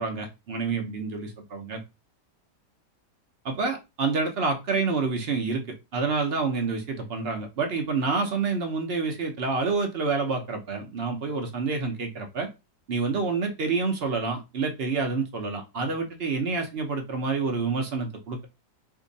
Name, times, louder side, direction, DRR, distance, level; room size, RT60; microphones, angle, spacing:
voice 1, 0.0-1.8 3.4-12.5 12.9-18.5, right 4 dB, 65° right, 0.5 m, -28 dB
2.7 x 2.6 x 3.9 m
omnidirectional pair, 1.9 m